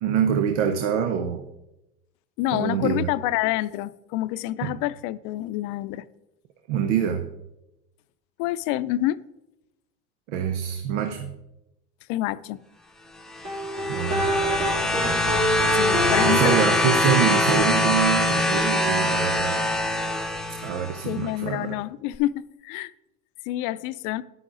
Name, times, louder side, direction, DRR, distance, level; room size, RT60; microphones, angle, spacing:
voice 1, 0.0-1.4 2.5-3.1 4.6-4.7 6.7-7.3 10.3-11.3 13.9-14.4 16.3-19.7 20.6-21.8, right 8 dB, 85° right, 0.8 m, -25 dB
voice 2, 2.4-6.1 8.4-9.2 12.1-12.6 15.7-16.6 21.1-22.9 23.5-24.2, left 15 dB, 65° left, 0.6 m, -27 dB
sound 1, 13.3-21.1 22.1-22.2, left 1 dB, ahead, 0.8 m, -23 dB
sound 2, 13.4-16.8, right 1 dB, 55° right, 3.2 m, -26 dB
10.0 x 9.2 x 3.9 m
supercardioid pair, 90°, 35 cm